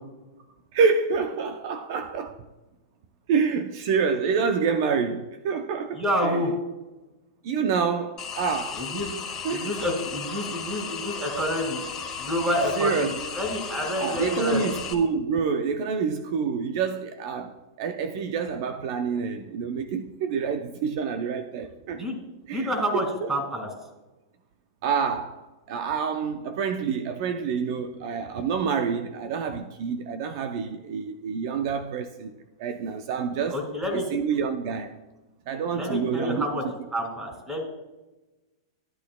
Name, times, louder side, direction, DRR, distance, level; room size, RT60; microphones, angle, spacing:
voice 1, 0.7-2.4 3.3-6.4 7.4-8.8 9.4-9.7 12.8-13.1 14.0-17.5 17.8-22.0 22.5-22.7 23.2-23.3 24.8-25.4 25.7-32.3 32.6-33.6 34.1-35.0 35.5-36.5, right 6 dB, 55° right, 0.5 m, -27 dB
voice 2, 5.9-6.5 8.8-9.1 9.5-11.8 12.2-14.6 22.0-22.1 22.5-23.7 33.5-34.0 35.7-36.6 36.9-37.7, equal, 10° right, 2.2 m, -28 dB
sound 1, 8.2-14.9, left 6 dB, 25° left, 1.5 m, -35 dB
13.5 x 8.3 x 2.2 m
hypercardioid pair, 135°, 2 cm